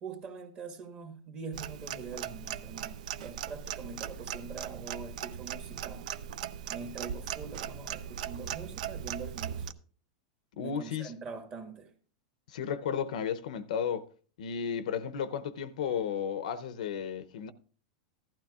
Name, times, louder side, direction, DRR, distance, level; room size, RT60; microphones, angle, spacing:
voice 1, 0.0-6.1 6.7-9.7 10.6-11.9, right 5 dB, 30° right, 1.6 m, -43 dB
Clock, 1.5-9.7, right 9 dB, 75° right, 0.5 m, -39 dB
voice 2, 10.6-11.1 12.5-14.1 14.4-17.5, left 7 dB, 80° left, 0.7 m, -33 dB
15.0 x 12.0 x 2.4 m
supercardioid pair, 135°, 4 cm